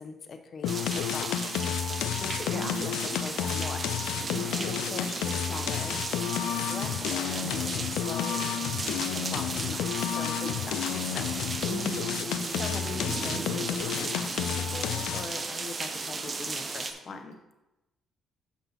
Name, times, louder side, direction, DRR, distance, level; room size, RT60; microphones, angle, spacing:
voice 1, 0.0-3.9 4.6-6.0 6.3-8.4 9.1-11.3 12.6-17.4, left 4 dB, 50° left, 6 dB, 0.8 m, -41 dB
sound 1, 0.6-15.4, left 10 dB, 85° left, 0.3 m, -31 dB
sound 2, 0.7-16.9, right 4 dB, 40° right, 0.8 m, -35 dB
voice 2, 2.5-3.2 4.3-4.6 10.4-10.9 11.7-12.2, right 3 dB, 90° right, -2 dB, 2.0 m, -39 dB
7.2 x 5.4 x 3.9 m, 0.99 s
supercardioid pair, 70°, 0 cm